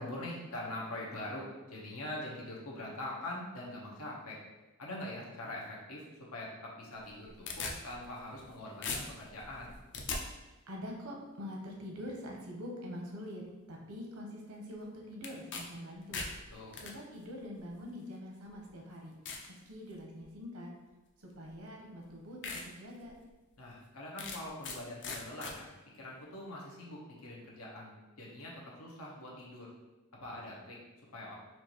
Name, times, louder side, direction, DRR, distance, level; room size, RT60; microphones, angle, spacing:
voice 1, 0.0-4.4 4.8-6.0 6.3-9.7 16.5-16.7 23.6-25.7 25.9-29.7 30.2-30.8 31.1-31.4, left 1 dB, 90° left, -3 dB, 0.9 m, -43 dB
sound 1, 7.0-8.5 8.8-10.2 15.2-15.6 15.9-16.9 17.8-17.9 18.5-18.6 19.3-19.5 20.0-20.3 21.5-21.6 22.0-22.1 22.4-22.6 23.1-23.2 24.2-24.8 25.0-25.5, left 4 dB, 55° left, 0.5 m, -39 dB
voice 2, 10.7-13.4 13.7-16.3 16.8-19.1 19.5-20.7 21.2-22.4 22.6-23.1, left 1 dB, 85° right, -1 dB, 0.8 m, -44 dB
4.4 x 2.5 x 2.9 m, 1.1 s
head